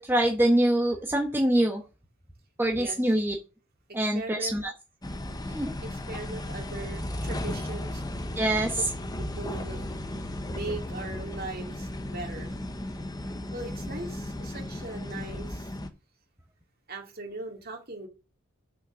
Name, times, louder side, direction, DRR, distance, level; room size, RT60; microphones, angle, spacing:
voice 1, 0.0-1.8 2.6-3.3 3.9-4.7 5.5-5.7 8.4-8.8, right 1 dB, 10° right, 1 dB, 1.2 m, -24 dB
voice 2, 2.7-3.1 4.1-4.7 5.8-8.0 9.2-9.9 10.5-12.5 13.5-15.7 16.9-18.1, right 2 dB, 45° right, 3 dB, 2.6 m, -39 dB
sound 1, 5.0-15.9, left 1 dB, 20° left, 0.9 m, -35 dB
6.3 x 6.3 x 6.2 m, 0.30 s
head